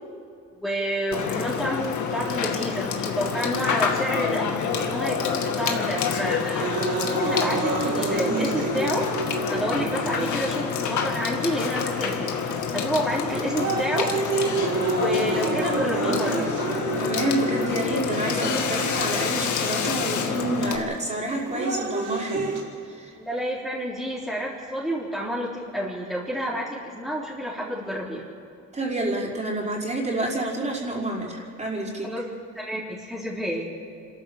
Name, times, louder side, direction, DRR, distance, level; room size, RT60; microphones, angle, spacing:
voice 1, 0.6-4.5 4.8-6.7 7.1-9.1 9.5-14.1 14.9-16.5 23.2-28.3 32.0-32.2 32.5-33.7, equal, ahead, -6 dB, 3.7 m, -29 dB
Water / Water tap faucet / Sink (filling or washing), 1.1-20.8, left 6 dB, 75° left, 2.1 m, -28 dB
sound 1, 6.6-10.6 11.3-11.4 12.3-12.6 13.1-18.6 19.6-19.7 21.1-22.6, right 3 dB, 80° right, 4.8 m, -28 dB
voice 2, 17.0-22.5 22.8-23.1 28.7-32.1, right 2 dB, 25° right, -3 dB, 5.0 m, -28 dB
27.0 x 13.5 x 7.2 m, 2.5 s
cardioid pair, 90°, 30 cm